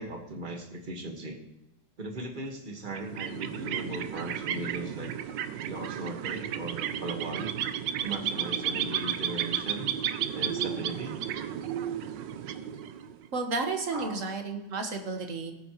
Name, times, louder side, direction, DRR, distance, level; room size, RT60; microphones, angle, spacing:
voice 1, 0.0-1.4 2.0-5.2 5.6-7.6 8.0-9.9 10.3-11.2 13.9-14.2, right 2 dB, 25° right, 3 dB, 1.5 m, -38 dB
sound 1, 2.9-13.3, right 9 dB, 70° right, 1.3 m, -33 dB
voice 2, 13.3-15.5, right 3 dB, 40° right, 4 dB, 1.6 m, -32 dB
18.0 x 8.7 x 3.1 m, 0.91 s
omnidirectional pair, 2.2 m